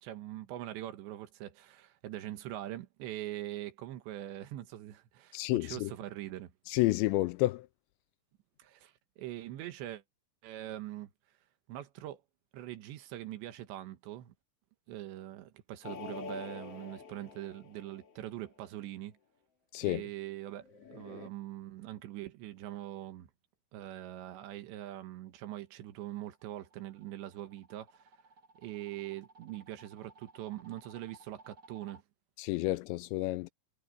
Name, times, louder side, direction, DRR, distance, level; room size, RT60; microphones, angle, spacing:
voice 1, 0.0-6.5 8.6-10.0 10.4-11.1 11.7-12.2 12.5-14.3 14.9-19.2 19.8-20.6 20.9-23.3 23.7-28.1 28.6-32.0, right 14 dB, 75° right, 3.4 m, -43 dB
voice 2, 5.3-5.9 6.7-7.7 19.7-20.0 32.4-33.5, left 19 dB, 85° left, 2.7 m, -30 dB
sound 1, 15.8-18.5 20.6-21.3, left 6 dB, 40° left, 2.6 m, -46 dB
sound 2, 25.8-32.0, right 3 dB, 45° right, 1.1 m, -59 dB
omnidirectional pair, 5.3 m